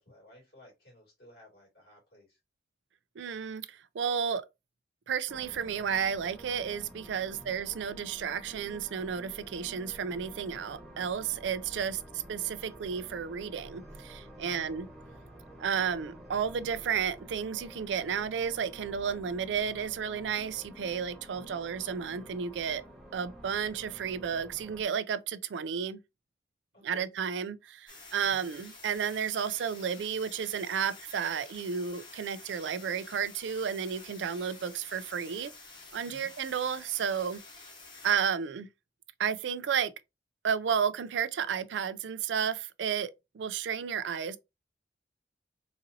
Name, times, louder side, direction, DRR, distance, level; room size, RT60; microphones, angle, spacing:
voice 1, 0.0-2.4 7.3-7.6 14.4-14.7 21.3-21.6 26.7-27.1 28.2-28.5 36.1-36.3, left 1 dB, 65° left, 2.4 m, -56 dB
voice 2, 3.2-4.4 5.1-14.9 15.6-22.8 23.1-26.0 26.8-35.5 35.9-37.4 38.0-38.7 39.2-39.9 40.4-44.4, right 7 dB, 90° right, 0.4 m, -32 dB
sound 1, 5.3-24.8, right 1 dB, ahead, 1.1 m, -50 dB
sound 2, 27.9-38.1, left 3 dB, 25° left, 1.1 m, -50 dB
4.0 x 2.7 x 2.6 m
head